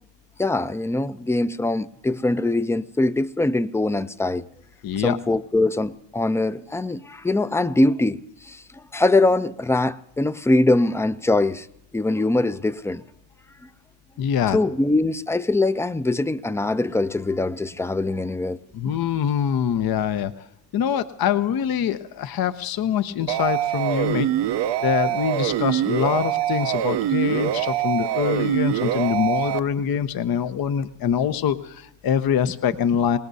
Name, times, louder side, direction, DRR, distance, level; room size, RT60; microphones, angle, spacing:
voice 1, 0.4-4.4 5.0-8.6 8.9-11.7 11.9-13.0 14.5-18.6, left 2 dB, 5° left, 0.5 m, -22 dB
voice 2, 4.8-5.2 14.2-14.6 18.7-20.3 20.7-24.3 24.8-33.2, left 8 dB, 50° left, 0.8 m, -24 dB
sound 1, 23.3-29.6, right 12 dB, 60° right, 0.8 m, -24 dB
26.0 x 19.0 x 2.7 m
supercardioid pair, 65°, 47 cm